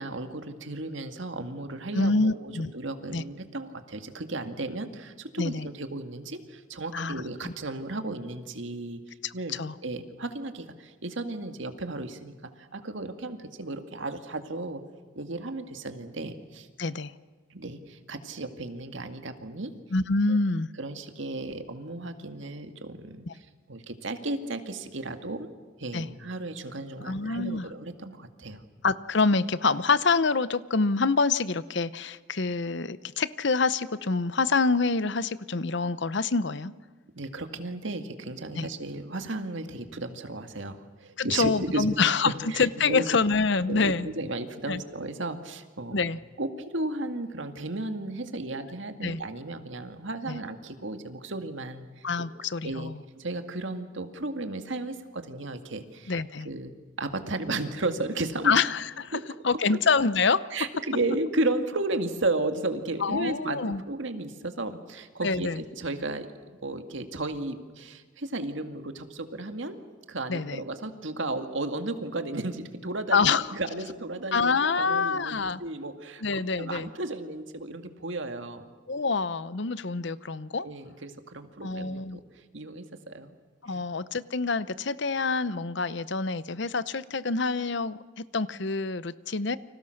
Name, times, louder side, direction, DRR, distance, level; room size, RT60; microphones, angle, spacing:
voice 1, 0.0-14.8 15.2-16.7 17.5-19.7 20.3-20.4 20.8-25.5 25.8-28.6 37.1-41.9 42.2-43.1 43.7-46.0 46.4-52.3 52.6-52.9 53.2-56.2 56.4-56.7 57.0-58.5 59.1-59.2 60.5-66.3 66.6-69.8 70.1-78.7 80.6-83.3 83.7-83.8, right 2 dB, 65° right, 7 dB, 2.1 m, -34 dB
voice 2, 1.9-2.7 3.1-3.2 5.4-5.7 6.9-7.2 7.4-7.5 9.2-9.7 16.8-17.1 19.9-20.7 23.3-23.4 25.9-26.1 27.0-27.7 28.8-36.7 38.6-38.7 41.2-44.1 44.7-44.8 45.9-46.2 49.0-49.2 50.3-50.4 52.0-53.0 56.1-56.5 58.4-59.2 59.4-60.4 63.0-63.8 65.2-65.6 70.3-70.6 73.1-73.5 74.3-75.6 76.2-76.9 78.9-80.7 81.6-82.2 83.6-89.6, left 4 dB, 60° left, 16 dB, 0.8 m, -26 dB
30.0 x 25.0 x 6.6 m, 1.4 s
head